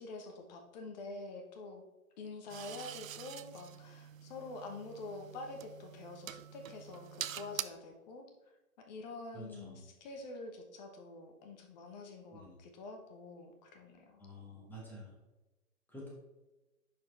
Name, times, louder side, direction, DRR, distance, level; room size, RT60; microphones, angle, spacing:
voice 1, 0.0-1.8 2.2-8.2 8.8-14.2, left 3 dB, 30° left, 4 dB, 1.2 m, -47 dB
sound 1, 2.5-7.6, right 10 dB, 65° right, 0.5 m, -45 dB
voice 2, 9.3-9.8 12.3-12.6 14.2-15.1 15.9-16.1, equal, 5° left, -4 dB, 1.7 m, -49 dB
10.5 x 4.7 x 3.4 m, 1.1 s
figure-of-eight pair, 125°, 45 cm